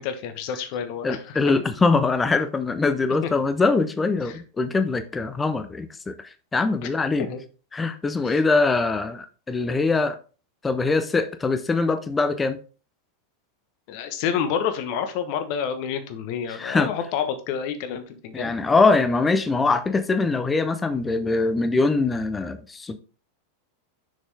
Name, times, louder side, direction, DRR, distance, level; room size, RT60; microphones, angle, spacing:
voice 1, 0.0-1.4 3.2-3.3 4.3-4.4 7.2-7.4 8.2-8.4 13.9-18.5, left 8 dB, 45° left, 8 dB, 1.1 m, -29 dB
voice 2, 1.0-6.1 6.5-7.3 7.7-10.2 10.6-12.6 16.5-16.9 18.3-23.0, left 3 dB, 15° left, 10 dB, 0.8 m, -22 dB
6.3 x 6.3 x 3.4 m, 0.37 s
figure-of-eight pair, 90°, 0 cm